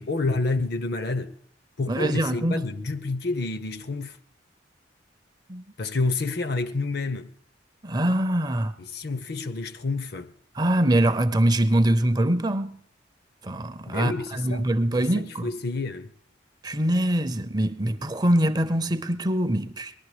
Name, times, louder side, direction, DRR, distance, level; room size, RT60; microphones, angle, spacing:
voice 1, 0.0-1.3 1.8-4.2 5.8-7.3 8.8-10.3 13.9-14.7 15.0-16.1, left 3 dB, 55° left, 0.7 m, -29 dB
voice 2, 1.9-2.6 5.5-5.6 7.8-8.7 10.5-12.8 13.4-15.5 16.6-19.9, right 1 dB, 20° right, 0.5 m, -23 dB
20.0 x 12.0 x 4.9 m
head